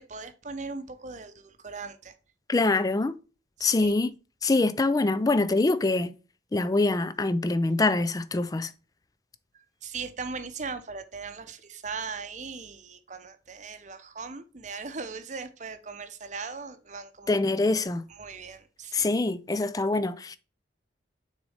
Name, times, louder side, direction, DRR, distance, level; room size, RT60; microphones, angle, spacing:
voice 1, 0.0-2.1 3.6-3.9 9.5-17.4 18.1-19.1, right 4 dB, 40° right, 0.7 m, -39 dB
voice 2, 2.5-3.2 3.6-4.1 4.4-6.1 6.5-8.7 17.3-18.1 18.9-20.4, left 2 dB, 20° left, 0.3 m, -24 dB
6.3 x 4.0 x 4.9 m
head